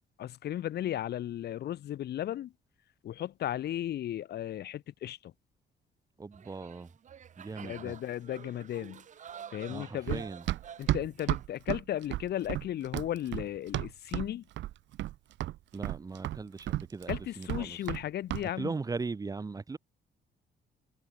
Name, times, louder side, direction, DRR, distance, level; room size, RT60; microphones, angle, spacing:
voice 1, 0.2-2.5 3.0-5.3 7.6-9.0 9.5-10.3 10.8-14.4 17.1-18.7, left 12 dB, 60° left, 2.6 m, -35 dB
voice 2, 6.2-6.9 7.4-7.9 9.7-10.4 15.7-17.1 17.4-17.8 18.6-19.8, right 4 dB, 20° right, 1.9 m, -38 dB
sound 1, 6.3-11.4, right 8 dB, 40° right, 1.9 m, -49 dB
Run, 10.1-14.3 14.6-15.2 15.4-18.0 18.3-18.5, right 15 dB, 90° right, 2.2 m, -33 dB
cardioid pair, 160°, 19 cm